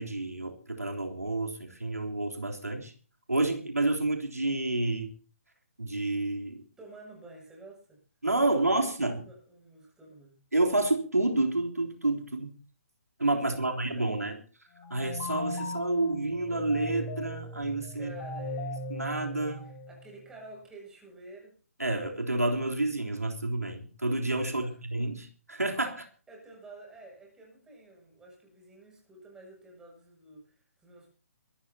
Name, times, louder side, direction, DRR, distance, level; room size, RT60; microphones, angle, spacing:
voice 1, 0.0-2.9 3.3-5.1 5.8-6.6 8.2-9.2 10.5-12.5 13.2-14.4 14.9-18.1 18.9-19.6 21.8-26.1, right 2 dB, 80° right, 2 dB, 3.5 m, -29 dB
voice 2, 6.8-8.0 8.4-8.9 9.2-10.4 13.4-14.2 17.9-18.8 19.6-21.5 24.4-24.8 26.3-31.1, right 2 dB, 5° right, -1 dB, 7.2 m, -50 dB
sound 1, 14.8-20.2, left 1 dB, 20° left, 3.1 m, -38 dB
23.5 x 13.5 x 2.9 m, 0.38 s
figure-of-eight pair, 135°, 8 cm